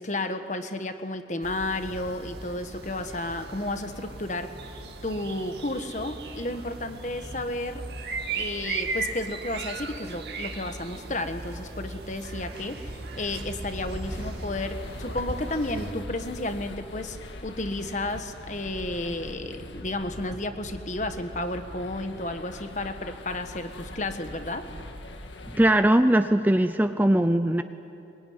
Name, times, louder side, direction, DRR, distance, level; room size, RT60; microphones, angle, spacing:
voice 1, 0.0-4.5 5.0-7.8 8.3-17.2 17.4-24.7, left 2 dB, 40° left, 8 dB, 1.4 m, -32 dB
sound 1, 1.4-15.9, right 3 dB, 60° right, 2.1 m, -37 dB
sound 2, 14.0-25.7, left 1 dB, 85° left, 1.9 m, -42 dB
voice 2, 25.5-27.6, right 1 dB, 10° right, 9 dB, 0.5 m, -20 dB
23.0 x 22.0 x 9.6 m, 2.8 s
head